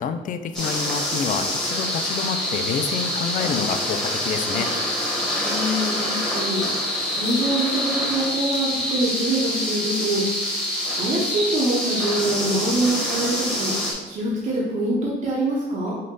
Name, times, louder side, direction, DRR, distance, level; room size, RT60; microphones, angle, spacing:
voice 1, 0.0-4.7, left 7 dB, 50° left, 9 dB, 0.4 m, -28 dB
sound 1, 0.5-13.9, left 1 dB, 5° left, 1.3 m, -26 dB
voice 2, 5.4-10.2 10.9-13.7 14.1-16.0, right 1 dB, 45° right, -4 dB, 1.0 m, -25 dB
5.5 x 2.5 x 3.8 m, 1.2 s
cardioid pair, 110°, 17 cm